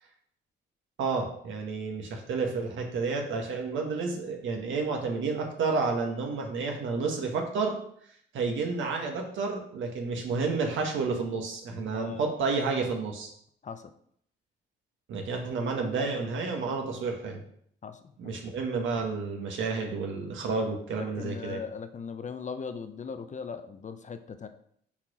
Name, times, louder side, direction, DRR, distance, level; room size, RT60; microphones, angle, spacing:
voice 1, 1.0-7.8 8.3-13.3 15.1-17.4 18.2-21.6, right 4 dB, 75° right, 2 dB, 1.5 m, -30 dB
voice 2, 11.9-12.2 13.6-13.9 17.8-18.3 21.0-24.5, left 5 dB, 35° left, 9 dB, 0.7 m, -39 dB
5.8 x 4.5 x 4.9 m, 0.66 s
cardioid pair, 90°, 20 cm